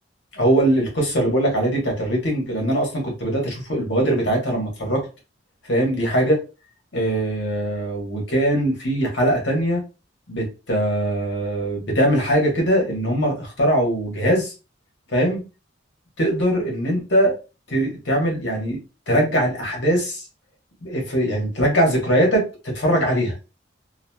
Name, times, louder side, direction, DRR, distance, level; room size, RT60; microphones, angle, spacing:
voice 1, 0.3-5.0 5.7-6.4 6.9-9.8 10.3-14.5 15.1-15.4 16.2-17.3 17.7-18.8 19.1-20.2 20.8-23.3, right 1 dB, 65° left, 0 dB, 1.2 m, -21 dB
3.0 x 2.4 x 2.2 m, 0.30 s
head